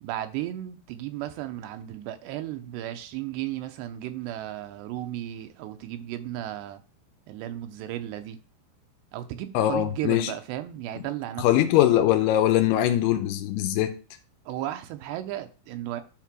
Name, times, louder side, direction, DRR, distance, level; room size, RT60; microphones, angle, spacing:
voice 1, 0.0-6.8 7.3-8.4 9.1-11.8 14.5-16.0, right 13 dB, 85° right, 3.0 m, -34 dB
voice 2, 9.5-10.3 11.4-13.9, left 12 dB, 80° left, 2.7 m, -22 dB
11.0 x 3.7 x 6.1 m
omnidirectional pair, 4.8 m